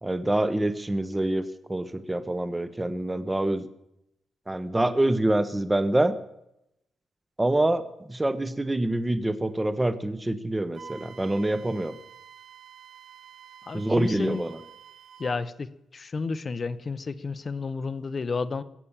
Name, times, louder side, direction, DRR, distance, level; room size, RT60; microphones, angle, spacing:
voice 1, 0.0-3.7 4.5-6.2 7.4-12.0 13.7-14.6, right 1 dB, 10° right, 12 dB, 0.9 m, -26 dB
Wind instrument woodwind instrument, 10.7-15.4, right 7 dB, 40° right, 0.8 m, -48 dB
voice 2, 13.6-14.4 15.2-18.6, left 4 dB, 30° left, 15 dB, 0.7 m, -32 dB
21.5 x 8.5 x 7.2 m, 0.83 s
wide cardioid pair, 170°, 0 cm